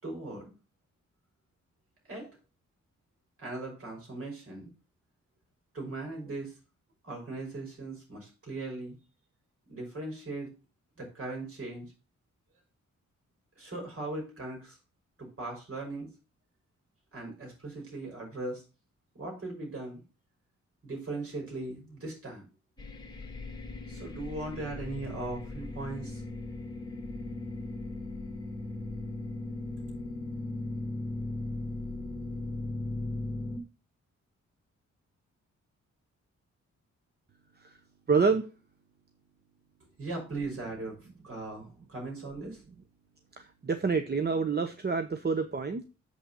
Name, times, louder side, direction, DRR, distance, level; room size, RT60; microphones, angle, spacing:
voice 1, 0.0-0.6 2.1-2.3 3.4-4.7 5.7-6.5 7.0-9.0 9.7-10.5 11.0-11.9 13.6-14.8 15.2-16.1 17.1-18.6 19.1-20.0 20.8-22.4 23.9-26.2 40.0-42.6, right 2 dB, 50° right, 0 dB, 5.7 m, -39 dB
sound 1, 22.8-33.6, left 2 dB, 15° left, 1.9 m, -38 dB
voice 2, 38.1-38.5 43.4-45.8, right 5 dB, 35° right, 8 dB, 0.9 m, -27 dB
7.2 x 5.8 x 5.5 m, 0.31 s
cardioid pair, 85°, 29 cm